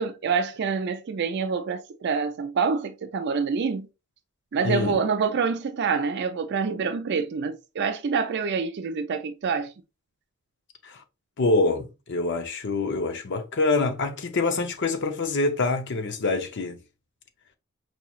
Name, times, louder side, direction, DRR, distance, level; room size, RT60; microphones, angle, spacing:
voice 1, 0.0-3.9 4.5-9.7, right 5 dB, 55° right, 0.4 m, -26 dB
voice 2, 4.6-5.0 10.8-11.0 11.4-16.8, left 3 dB, 60° left, 0.7 m, -25 dB
4.7 x 3.0 x 2.3 m
head